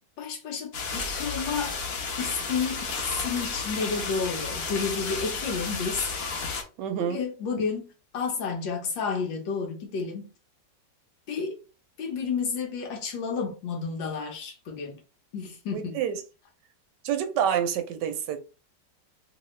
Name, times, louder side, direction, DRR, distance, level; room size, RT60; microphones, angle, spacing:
voice 1, 0.2-1.8 2.2-6.2 7.0-7.9 8.1-10.3 11.3-11.6 12.0-15.0 15.3-16.0, left 5 dB, 85° left, 1.7 m, -31 dB
sound 1, 0.7-6.6, left 4 dB, 55° left, 1.2 m, -32 dB
voice 2, 6.8-7.2 15.7-16.2 17.0-18.4, right 9 dB, 75° right, 1.1 m, -27 dB
3.3 x 2.9 x 3.1 m
omnidirectional pair, 2.0 m